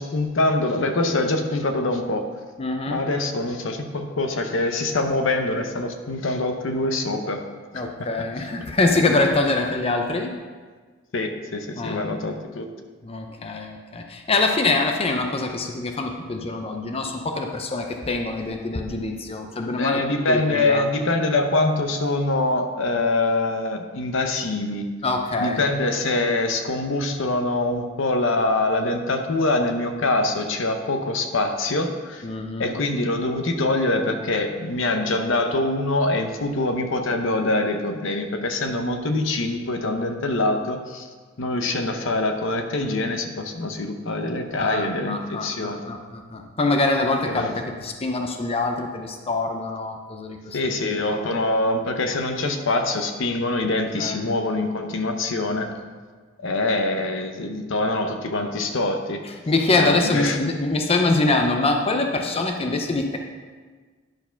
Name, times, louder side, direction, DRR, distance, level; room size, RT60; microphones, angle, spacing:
voice 1, 0.0-2.3 2.9-7.4 11.1-12.7 19.7-24.9 25.4-32.3 32.6-41.1 41.4-45.8 47.3-47.5 50.5-55.7 56.4-59.2 59.8-60.4, left 2 dB, 70° left, 6 dB, 0.8 m, -24 dB
voice 2, 2.6-3.0 7.7-10.3 11.8-12.1 13.0-20.0 20.3-20.9 25.0-25.6 32.2-32.7 44.6-51.3 54.0-54.3 59.2-63.2, left 2 dB, 30° left, 3 dB, 0.6 m, -24 dB
10.5 x 4.6 x 5.7 m, 1.5 s
head